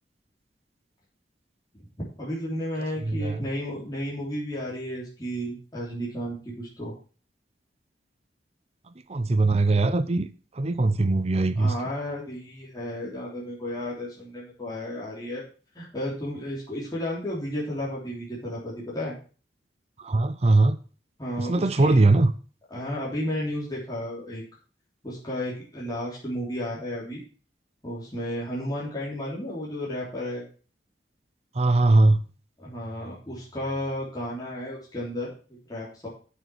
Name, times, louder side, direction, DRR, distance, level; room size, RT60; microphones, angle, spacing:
voice 1, 2.2-6.9 11.6-15.4 15.8-19.2 21.2-22.0 22.7-24.4 25.0-27.2 27.8-30.4 32.6-36.1, equal, 20° left, 3.5 m, -33 dB
voice 2, 3.0-3.5 9.1-10.3 10.6-11.7 20.0-20.8 21.4-22.3 31.6-32.2, right 2 dB, 35° right, 0.6 m, -21 dB
9.5 x 6.7 x 6.2 m
head